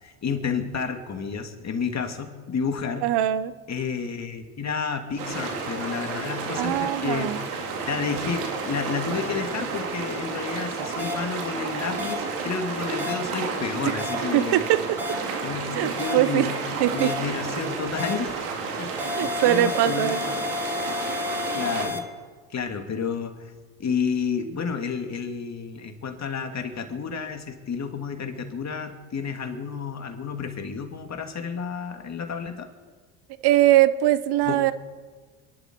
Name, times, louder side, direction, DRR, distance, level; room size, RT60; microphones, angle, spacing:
voice 1, 0.0-3.1 3.7-7.3 7.9-14.7 15.4-16.5 16.9-18.4 18.8-20.3 21.5-22.0 22.5-23.3 23.8-32.7 34.5-34.6, left 6 dB, 35° left, 5 dB, 2.5 m, -31 dB
voice 2, 3.0-3.5 6.6-7.4 13.9-14.0 14.3-14.8 15.7-16.5 16.8-17.1 19.0-20.2 33.4-34.7, right 14 dB, 60° right, 15 dB, 0.9 m, -21 dB
sound 1, 5.2-21.9, right 4 dB, 90° right, 2.9 m, -31 dB
sound 2, 11.0-11.1 12.0-12.1 13.0-13.1 14.0-14.1 15.0-15.1 16.0-16.1 17.0-17.1 18.0-18.1 19.0-22.0, left 4 dB, 5° right, 2.8 m, -31 dB
28.0 x 11.5 x 4.6 m, 1.5 s
hypercardioid pair, 75°, 44 cm